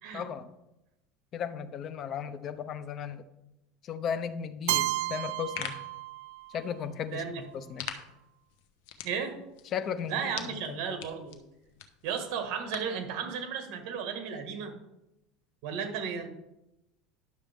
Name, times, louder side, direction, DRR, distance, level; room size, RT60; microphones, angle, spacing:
voice 1, 0.1-0.5 1.3-3.3 3.8-5.8 6.5-7.2 7.5-7.9 9.7-10.8, left 7 dB, 40° left, 11 dB, 0.7 m, -35 dB
Keyboard (musical), 4.7-6.6, right 19 dB, 85° right, 0.3 m, -32 dB
sound 1, 5.2-13.0, left 9 dB, 75° left, 1.0 m, -45 dB
voice 2, 7.1-7.4 9.0-9.4 10.1-11.4 12.0-14.7 15.6-16.3, right 6 dB, 60° right, 6 dB, 1.6 m, -34 dB
11.0 x 6.5 x 3.6 m, 0.91 s
supercardioid pair, 140°, 0 cm